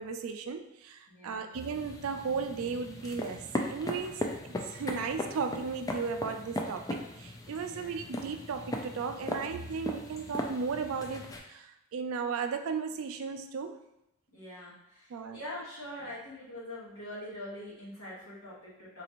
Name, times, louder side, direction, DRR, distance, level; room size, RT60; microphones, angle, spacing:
voice 1, 0.0-4.2 4.7-13.8 15.1-15.4, right 5 dB, 70° right, 7 dB, 0.3 m, -35 dB
voice 2, 1.1-1.5 4.0-4.4 7.6-7.9 14.3-19.0, left 1 dB, 75° left, -7 dB, 1.5 m, -44 dB
sound 1, 1.5-11.4, left 1 dB, 15° left, 0.3 m, -38 dB
4.0 x 2.5 x 3.0 m, 0.85 s
head